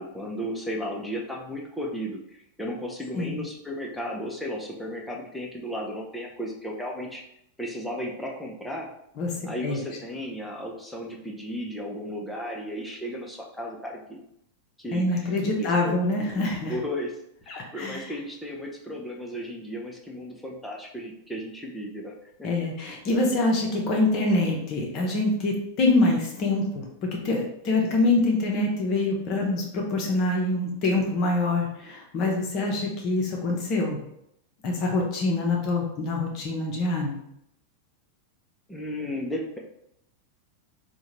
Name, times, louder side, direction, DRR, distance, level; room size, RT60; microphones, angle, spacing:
voice 1, 0.0-7.2 7.6-8.9 9.4-14.2 14.8-16.0 16.7-17.1 17.5-22.1 22.4-22.5 38.7-39.6, equal, 5° left, -2 dB, 0.6 m, -34 dB
voice 2, 14.9-16.7 17.5-18.1 22.4-34.0 34.6-37.2, left 2 dB, 40° left, 0 dB, 0.7 m, -25 dB
3.6 x 2.2 x 3.0 m, 0.76 s
figure-of-eight pair, 90°, 0 cm